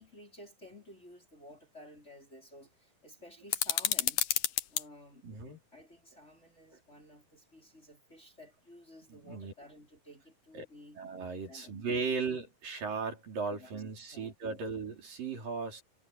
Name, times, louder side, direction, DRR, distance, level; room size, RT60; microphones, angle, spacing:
voice 1, 0.0-4.3 4.7-5.2 5.7-11.0 11.4-11.8 12.0-12.2 13.5-13.7 14.1-14.7, left 1 dB, 15° left, 4.9 m, -54 dB
sound 1, 3.5-4.9, left 12 dB, 65° left, 2.6 m, -30 dB
voice 2, 5.2-5.6 9.1-9.5 10.5-10.7 11.0-15.8, right 5 dB, 60° right, 6.4 m, -37 dB
omnidirectional pair, 4.5 m